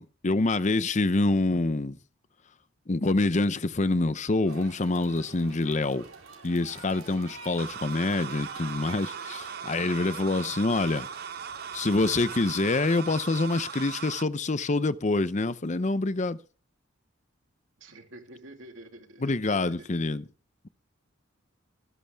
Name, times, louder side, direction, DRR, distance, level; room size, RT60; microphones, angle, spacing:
voice 1, 0.0-2.0 2.9-6.0 6.4-11.1 11.7-16.4 19.2-20.3, left 2 dB, 35° left, 0.6 m, -26 dB
sound 1, 4.5-12.4, right 4 dB, 85° right, 3.9 m, -47 dB
sound 2, 7.6-14.2, right 7 dB, 50° right, 0.6 m, -39 dB
voice 2, 17.8-20.2, right 1 dB, 65° right, 3.0 m, -48 dB
21.5 x 11.0 x 3.5 m
head